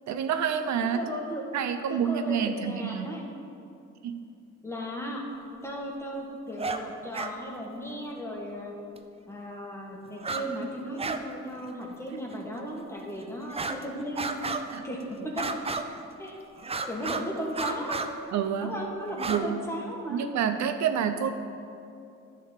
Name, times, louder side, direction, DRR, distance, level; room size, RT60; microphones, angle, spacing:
voice 1, 0.1-1.0 1.5-3.1 4.0-4.3 14.7-14.9 18.3-18.7 19.3-19.6 20.1-21.3, right 8 dB, 70° right, 8 dB, 0.6 m, -28 dB
voice 2, 0.8-1.4 1.9-3.2 4.6-5.2 5.6-8.7 9.2-14.3 14.8-15.5 16.2-16.3 16.9-18.1 18.6-20.2, equal, 10° left, -2 dB, 1.6 m, -36 dB
sound 1, 6.6-6.8 7.1-7.3 9.0-9.1 10.2-10.5 10.7-11.2 11.5-11.7 12.3-12.4 13.5-13.8 14.2-14.8 15.4-16.1 16.6-17.3 17.5-18.1 19.1-19.4, right 4 dB, 20° right, 0.5 m, -32 dB
10.5 x 3.9 x 7.2 m, 2.6 s
cardioid pair, 90°, 30 cm